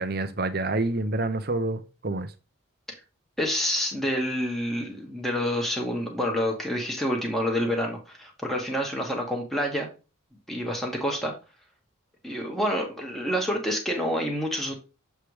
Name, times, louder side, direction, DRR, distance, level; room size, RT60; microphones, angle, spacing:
voice 1, 0.0-2.3, right 2 dB, 45° right, 0.8 m, -28 dB
voice 2, 3.4-9.9 10.5-11.3 12.2-14.8, equal, ahead, 1.4 m, -28 dB
7.6 x 3.4 x 4.8 m
head